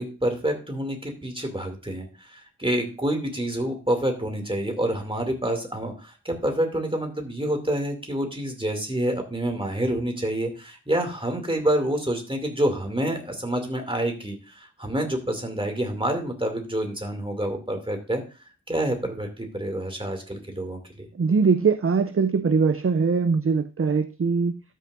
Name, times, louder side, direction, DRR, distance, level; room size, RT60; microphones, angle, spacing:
voice 1, 0.0-18.2 18.7-21.1, right 1 dB, 20° right, 3 dB, 2.5 m, -27 dB
voice 2, 21.2-24.6, right 5 dB, 50° right, 10 dB, 0.5 m, -22 dB
13.0 x 6.5 x 2.6 m, 0.32 s
wide cardioid pair, 50°, 29 cm